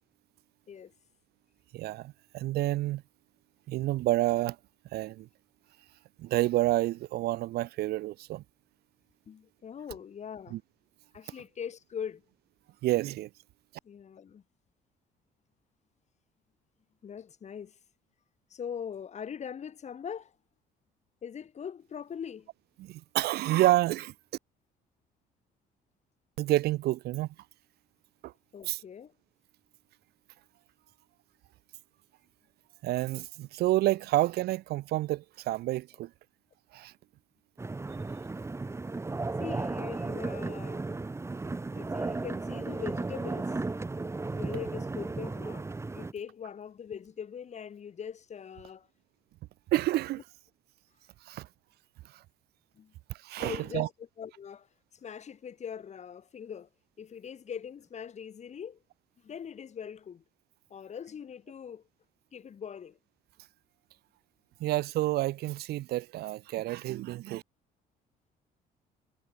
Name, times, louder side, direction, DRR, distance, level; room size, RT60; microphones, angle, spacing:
voice 1, 1.7-3.0 3.7-4.6 4.9-5.3 6.2-8.4 10.5-10.6 12.8-13.3 22.8-24.1 26.4-27.3 28.2-28.3 28.7-28.8 32.8-36.1 36.7-36.9 49.7-50.2 51.3-51.5 53.2-53.9 64.6-67.4, right 16 dB, 70° right, 0.7 m, -29 dB
voice 2, 9.3-10.6 11.1-12.2 13.8-14.4 17.0-17.8 18.5-20.3 21.2-22.5 28.5-29.1 39.4-40.8 41.7-43.6 44.3-45.7 45.9-48.9 52.7-52.9 53.4-53.9 54.2-54.7 54.9-56.7 57.0-58.8 59.2-60.2 60.7-61.8 62.3-63.0, left 7 dB, 40° left, 4.6 m, -41 dB
sound 1, 37.6-46.1, right 3 dB, 15° right, 1.8 m, -35 dB
cardioid pair, 110°, 17 cm